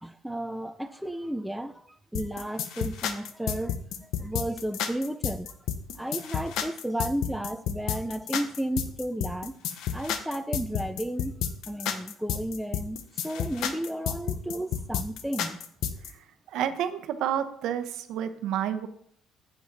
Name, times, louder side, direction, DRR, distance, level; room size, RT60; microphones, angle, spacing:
voice 1, 0.0-5.5 6.0-9.5 9.9-15.6, right 1 dB, ahead, 0.4 m, -33 dB
sound 1, 2.1-16.1, left 8 dB, 70° left, 0.8 m, -31 dB
voice 2, 16.5-18.9, right 10 dB, 65° right, 0.8 m, -29 dB
7.7 x 7.3 x 4.0 m
cardioid pair, 160°, 0 cm